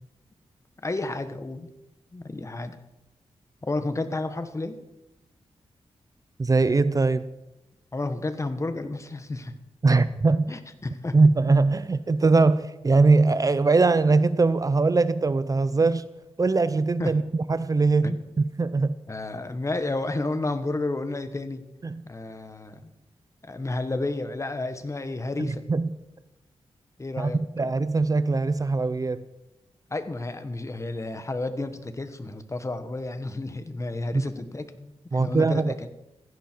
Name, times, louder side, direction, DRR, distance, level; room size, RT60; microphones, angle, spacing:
voice 1, 0.8-1.7 2.1-2.8 3.6-4.8 7.9-9.6 10.5-11.2 15.8-15.9 17.0-17.1 18.0-18.2 19.1-21.6 22.0-22.9 23.4-25.7 27.0-27.7 29.9-35.9, left 2 dB, 30° left, 10 dB, 1.4 m, -31 dB
voice 2, 6.4-7.3 9.8-10.5 11.1-16.0 16.4-19.0 21.8-22.0 25.4-25.9 27.2-29.2 34.1-34.2 35.1-35.9, right 3 dB, 35° right, 14 dB, 0.6 m, -21 dB
16.0 x 15.5 x 4.6 m, 0.95 s
wide cardioid pair, 85°, 11 cm